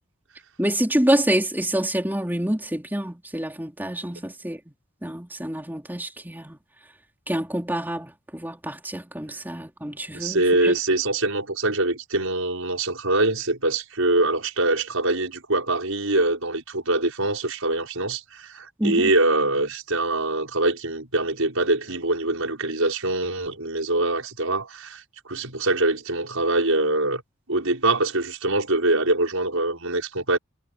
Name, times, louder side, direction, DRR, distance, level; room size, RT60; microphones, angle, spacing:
voice 1, 0.6-4.7 5.0-6.6 7.3-10.7 18.8-19.1, right 1 dB, 10° right, 3.6 m, -27 dB
voice 2, 10.1-27.2 27.5-30.4, right 2 dB, 80° right, 5.8 m, -24 dB
head